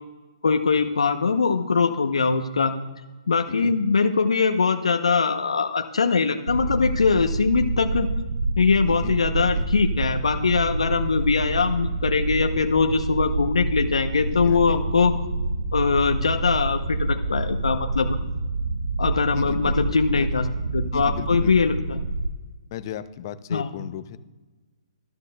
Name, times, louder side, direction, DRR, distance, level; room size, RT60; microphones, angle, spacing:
voice 1, 0.4-2.7 3.3-8.1 8.6-15.1 15.7-18.2 19.0-20.5 20.7-22.0 23.5-23.7, left 5 dB, 85° left, 6 dB, 0.6 m, -22 dB
sound 1, 6.5-22.3, right 3 dB, 90° right, 0.6 m, -27 dB
voice 2, 8.9-9.7 14.4-14.8 19.3-20.3 20.9-21.7 22.7-24.2, left 10 dB, 40° left, 13 dB, 0.5 m, -36 dB
13.0 x 11.5 x 2.2 m, 1.2 s
hypercardioid pair, 145°, 3 cm